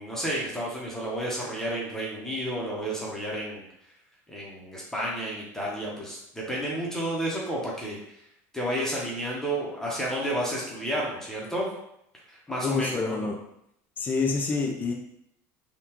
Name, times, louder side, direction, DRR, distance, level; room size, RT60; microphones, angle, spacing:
voice 1, 0.0-3.6 4.3-8.2 8.5-11.7 12.3-13.3, right 1 dB, 5° left, -4 dB, 0.8 m, -31 dB
voice 2, 12.6-13.4 14.0-14.9, left 4 dB, 20° left, 1 dB, 0.4 m, -27 dB
3.6 x 2.3 x 2.9 m, 0.75 s
supercardioid pair, 110°, 8 cm